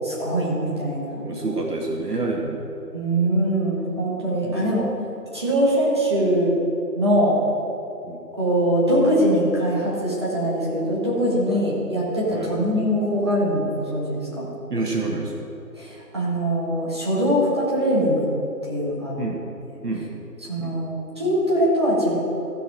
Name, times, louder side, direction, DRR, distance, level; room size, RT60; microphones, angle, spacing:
voice 1, 0.0-1.3 2.9-4.8 5.3-6.5 6.9-7.4 8.4-14.5 15.8-18.3 18.6-19.1 20.5-22.2, equal, 15° right, -7 dB, 1.5 m, -22 dB
voice 2, 1.2-2.6 4.4-4.7 8.1-8.2 11.5-11.6 12.3-12.5 14.7-15.3 19.2-19.4 19.8-20.1 20.6-20.7, right 3 dB, 70° right, 0 dB, 1.8 m, -28 dB
15.0 x 6.0 x 4.8 m, 2.8 s
figure-of-eight pair, 165°, 48 cm